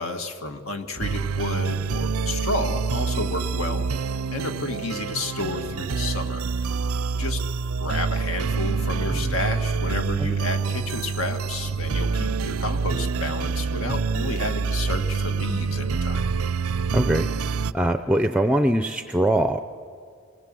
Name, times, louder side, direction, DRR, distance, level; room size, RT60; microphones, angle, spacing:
voice 1, 0.0-6.5 7.2-7.4 7.8-16.3, left 2 dB, 70° left, 6 dB, 2.0 m, -31 dB
sound 1, 1.0-17.7, right 4 dB, 75° right, 0.5 m, -26 dB
voice 2, 16.9-17.3 17.7-19.6, right 1 dB, 5° right, 8 dB, 0.5 m, -22 dB
27.5 x 20.5 x 7.7 m, 2.2 s
head